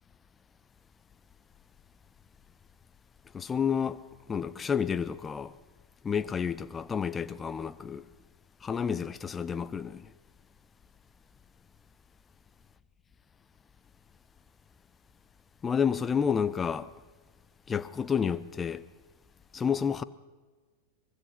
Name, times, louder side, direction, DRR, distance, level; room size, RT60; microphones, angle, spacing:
voice 1, 3.3-4.0 4.3-5.5 6.0-8.0 8.6-10.1 15.6-16.9 17.7-18.8 19.5-20.0, left 7 dB, 20° left, 0.8 m, -30 dB
24.5 x 22.5 x 5.8 m
figure-of-eight pair, 90°, 0 cm